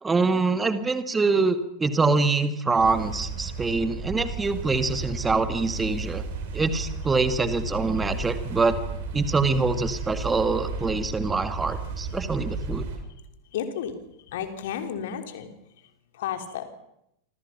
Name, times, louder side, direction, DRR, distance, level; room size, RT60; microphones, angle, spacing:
voice 1, 0.0-6.2 6.5-8.8 9.1-12.9, right 3 dB, 15° right, 10 dB, 2.0 m, -24 dB
sound 1, 2.8-13.0, right 3 dB, 55° right, 7.1 m, -33 dB
voice 2, 13.5-16.7, left 8 dB, 55° left, 7 dB, 3.5 m, -33 dB
28.0 x 26.5 x 5.9 m, 0.80 s
figure-of-eight pair, 90°, 0 cm